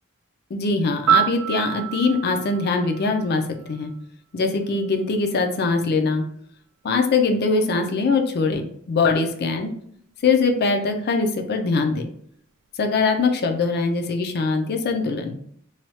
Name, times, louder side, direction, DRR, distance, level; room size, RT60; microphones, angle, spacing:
voice 1, 0.5-3.9 4.3-6.2 6.8-9.7 10.2-12.1 12.8-15.4, left 4 dB, 50° left, 5 dB, 0.4 m, -22 dB
Piano, 1.1-4.0 12.1-12.3, right 11 dB, 80° right, 0.3 m, -26 dB
3.2 x 2.3 x 2.8 m, 0.65 s
head